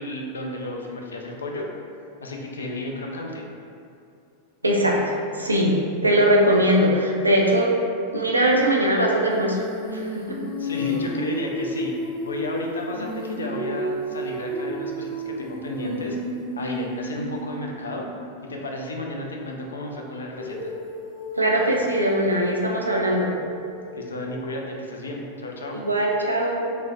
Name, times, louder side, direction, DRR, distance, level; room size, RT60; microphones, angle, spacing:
voice 1, 0.0-1.7 2.2-3.4 10.6-11.9 12.2-16.2 16.6-18.1 18.5-20.7 23.9-25.8, left 1 dB, 70° left, 0 dB, 0.3 m, -33 dB
voice 2, 4.6-7.8 8.1-9.6 9.9-10.4 21.3-23.3 25.7-26.8, right 1 dB, 80° right, -1 dB, 0.3 m, -21 dB
Female singing, 9.3-18.2 20.4-24.6, equal, 40° left, 1.4 m, -32 dB
3.1 x 2.0 x 2.4 m, 2.5 s
figure-of-eight pair, 90°, 0 cm